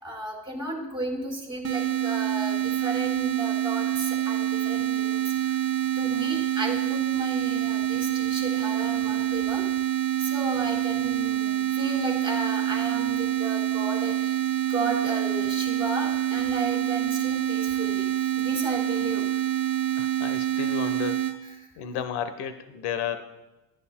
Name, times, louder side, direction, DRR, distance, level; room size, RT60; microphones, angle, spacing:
voice 1, 0.0-5.6 6.0-9.7 10.2-14.4 14.7-19.5, right 2 dB, 10° right, -1 dB, 3.9 m, -34 dB
sound 1, 1.6-21.4, right 13 dB, 30° right, 1.5 m, -26 dB
voice 2, 20.0-21.3 21.8-23.2, left 8 dB, 55° left, 10 dB, 1.1 m, -32 dB
15.5 x 9.6 x 2.2 m, 1.0 s
supercardioid pair, 90°, 47 cm